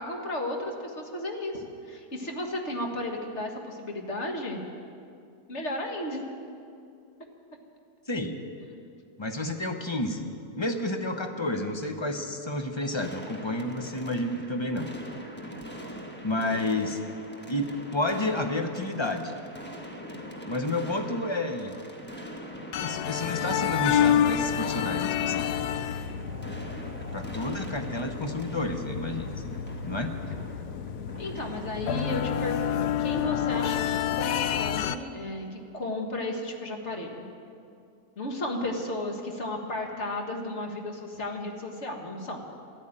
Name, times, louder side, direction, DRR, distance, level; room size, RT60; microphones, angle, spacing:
voice 1, 0.0-4.6 5.5-6.2 31.2-37.3 38.2-42.5, left 1 dB, 45° left, 2 dB, 1.9 m, -34 dB
voice 2, 8.1-8.4 9.2-10.3 10.6-14.9 16.2-17.0 17.5-19.3 20.5-21.7 22.8-25.5 27.0-29.5 29.8-30.1, left 1 dB, 25° left, 5 dB, 0.7 m, -30 dB
sound 1, 13.0-32.6, equal, 5° left, 1.1 m, -43 dB
sound 2, 22.7-35.0, left 9 dB, 75° left, 1.1 m, -29 dB
13.5 x 12.0 x 8.8 m, 2.5 s
omnidirectional pair, 1.8 m